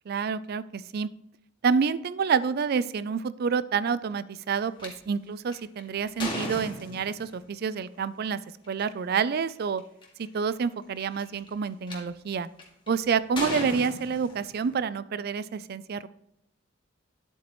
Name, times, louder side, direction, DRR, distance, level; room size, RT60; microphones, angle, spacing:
voice 1, 0.1-1.1 1.6-8.4 8.7-9.8 10.2-12.5 12.9-16.1, right 6 dB, 50° right, 17 dB, 0.4 m, -28 dB
sound 1, 4.8-4.9 5.5-7.4 8.6-8.8 9.5-9.6 9.8-10.2 11.0-11.9 12.6-12.9 13.4-14.8, left 1 dB, 25° left, 2.0 m, -36 dB
10.5 x 8.1 x 3.0 m, 0.79 s
head